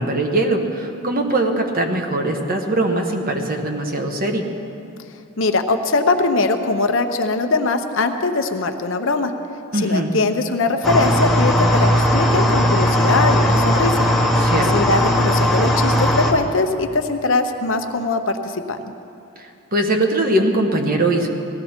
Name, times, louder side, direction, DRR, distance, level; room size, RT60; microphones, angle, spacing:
voice 1, 0.0-4.4 9.7-10.1 14.4-14.9 19.4-21.3, right 1 dB, 45° right, 3 dB, 1.2 m, -21 dB
voice 2, 5.4-9.3 9.7-13.9 14.5-18.8, left 3 dB, 65° left, 7 dB, 0.8 m, -21 dB
sound 1, 10.8-16.3, equal, ahead, 1.0 m, -17 dB
18.0 x 14.0 x 4.4 m, 2.6 s
head